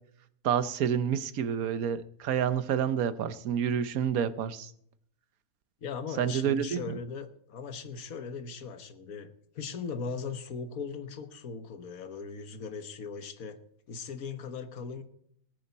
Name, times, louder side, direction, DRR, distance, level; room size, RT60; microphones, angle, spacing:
voice 1, 0.4-4.7 6.2-7.0, right 8 dB, 75° right, 1.3 m, -29 dB
voice 2, 5.8-13.6 13.9-15.0, left 5 dB, 70° left, 1.6 m, -39 dB
18.5 x 10.0 x 4.1 m
omnidirectional pair, 1.5 m